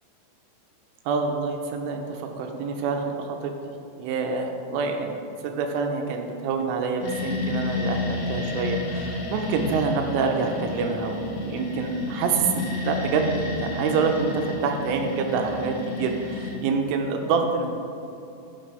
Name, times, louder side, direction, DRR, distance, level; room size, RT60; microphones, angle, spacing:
voice 1, 1.1-3.5 4.0-5.2 5.4-17.7, right 4 dB, 85° right, 3 dB, 3.3 m, -26 dB
sound 1, 7.0-16.6, left 3 dB, 70° left, 1.8 m, -31 dB
15.5 x 6.7 x 3.4 m, 2.7 s
omnidirectional pair, 5.7 m